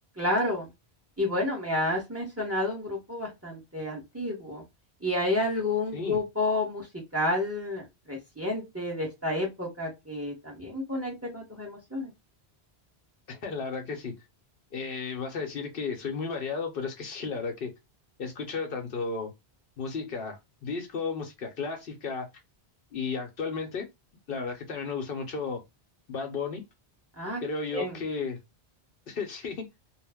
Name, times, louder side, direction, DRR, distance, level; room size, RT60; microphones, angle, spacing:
voice 1, 0.2-0.7 1.2-4.6 5.0-6.9 7.1-12.1 27.2-27.4 27.7-28.0, left 1 dB, 15° right, 0.8 m, -30 dB
voice 2, 13.3-14.2 14.7-17.7 18.2-19.3 19.8-22.3 22.9-23.9 24.3-25.6 26.1-26.6 27.4-28.4 29.1-29.7, left 4 dB, 65° left, 0.8 m, -33 dB
2.3 x 2.0 x 3.4 m
omnidirectional pair, 1.1 m